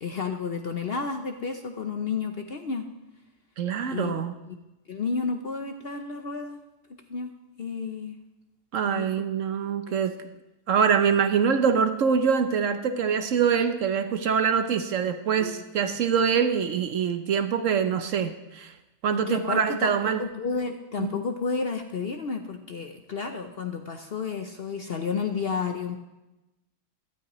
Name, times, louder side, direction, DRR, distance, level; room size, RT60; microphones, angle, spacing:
voice 1, 0.0-2.8 3.9-4.2 4.9-6.6 7.1-8.2 8.9-9.2 9.9-10.3 15.4-15.6 16.0-16.1 19.1-19.9 20.2-26.0, left 5 dB, 50° left, 6 dB, 0.7 m, -31 dB
voice 2, 3.6-4.3 8.7-10.2 10.7-18.7 19.0-20.3 21.0-21.1, right 7 dB, 65° right, 9 dB, 0.9 m, -24 dB
17.0 x 12.5 x 3.0 m, 1.0 s
omnidirectional pair, 1.6 m